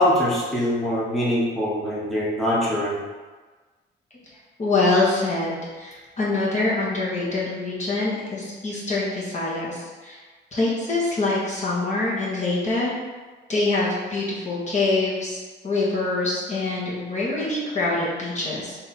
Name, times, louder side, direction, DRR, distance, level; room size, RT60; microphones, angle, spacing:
voice 1, 0.0-2.9, left 1 dB, ahead, -8 dB, 1.2 m, -23 dB
voice 2, 4.6-10.2 10.5-12.9 13.5-18.8, left 2 dB, 35° left, -7 dB, 1.3 m, -25 dB
3.3 x 2.8 x 4.2 m, 1.3 s
cardioid pair, 90°, 20 cm